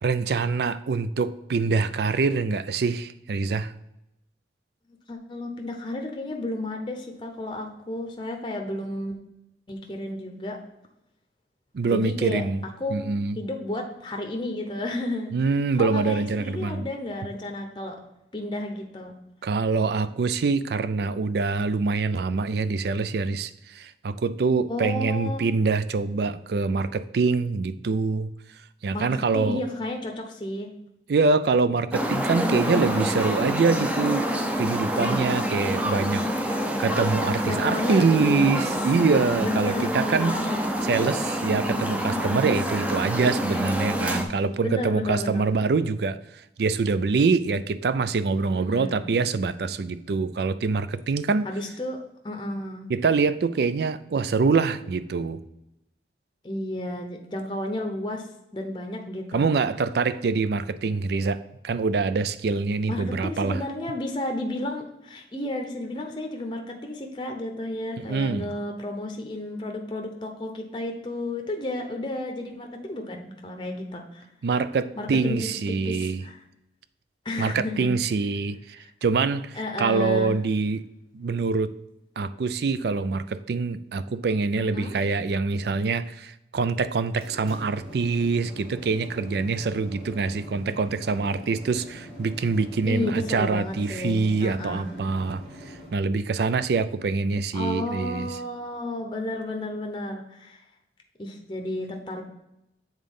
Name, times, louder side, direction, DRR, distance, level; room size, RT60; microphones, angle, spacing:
voice 1, 0.0-3.7 11.7-12.6 12.9-13.4 15.3-16.9 19.4-28.3 28.8-29.6 31.1-34.3 34.6-40.4 40.8-46.2 46.6-51.5 52.9-55.4 59.3-63.6 68.0-68.5 74.4-76.2 77.4-80.8 81.1-81.8 82.2-95.4 95.9-98.3, right 4 dB, 60° right, 14 dB, 0.4 m, -25 dB
voice 2, 5.1-9.2 9.7-10.6 11.9-12.5 12.8-13.1 13.4-15.3 15.8-18.0 18.3-19.2 24.7-25.4 28.9-30.7 32.4-33.1 36.5-37.0 37.5-38.7 39.3-40.6 44.6-45.6 48.5-49.2 51.4-52.0 52.2-52.9 56.4-58.3 58.5-59.5 62.9-74.2 75.0-76.4 77.2-78.0 78.8-78.9 79.5-80.3 84.6-85.0 92.9-94.9 97.5-100.6 101.2-102.2, left 1 dB, 25° left, 3 dB, 0.7 m, -32 dB
sound 1, 31.9-44.2, equal, 10° right, 0.5 m, -27 dB
sound 2, 87.0-95.9, equal, 30° right, 1.9 m, -44 dB
7.3 x 3.8 x 5.3 m, 0.87 s
head